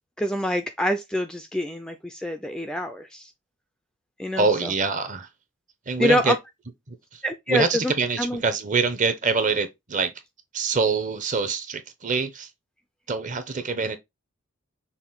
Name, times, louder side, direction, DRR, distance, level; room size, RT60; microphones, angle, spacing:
voice 1, 0.2-3.3 4.2-4.7 6.0-6.4 7.2-7.9 8.2-8.4, left 1 dB, 5° left, 0.3 m, -26 dB
voice 2, 4.4-5.3 5.9-6.3 6.9-7.0 7.5-10.1 10.5-12.5 13.1-14.0, right 4 dB, 35° right, 0.7 m, -25 dB
5.8 x 2.5 x 3.6 m
head